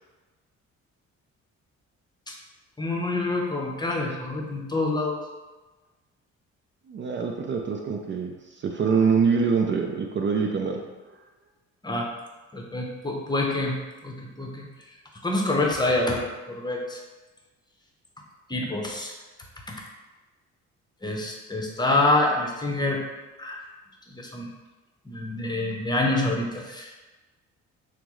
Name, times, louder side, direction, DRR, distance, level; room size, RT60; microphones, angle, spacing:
voice 1, 2.8-5.2 11.8-12.1 12.5-14.7 15.2-17.0 18.5-19.1 21.0-23.0 23.4-23.6 24.1-24.5 25.1-26.9, left 2 dB, 15° left, 0 dB, 0.7 m, -26 dB
voice 2, 6.9-10.8, right 5 dB, 40° right, 2 dB, 0.4 m, -24 dB
5.7 x 2.0 x 3.1 m, 1.2 s
cardioid pair, 90°, 30 cm